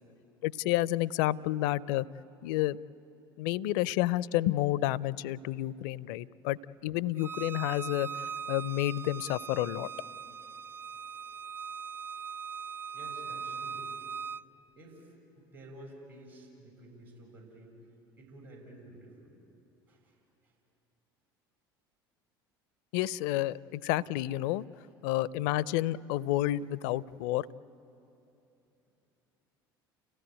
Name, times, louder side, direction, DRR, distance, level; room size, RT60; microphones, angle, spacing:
voice 1, 0.4-2.1 2.4-2.8 3.4-8.1 8.5-9.9 22.9-24.6 25.0-27.5, left 15 dB, 60° left, 22 dB, 0.4 m, -30 dB
Bowed string instrument, 7.2-14.4, right 6 dB, 20° right, 0.4 m, -40 dB
voice 2, 12.9-14.1 14.8-17.8 18.2-19.4 19.9-20.2 20.4-20.5 24.9-25.0, right 1 dB, 80° right, -2 dB, 7.1 m, -51 dB
30.0 x 16.0 x 9.1 m, 2.9 s
figure-of-eight pair, 65°, 12 cm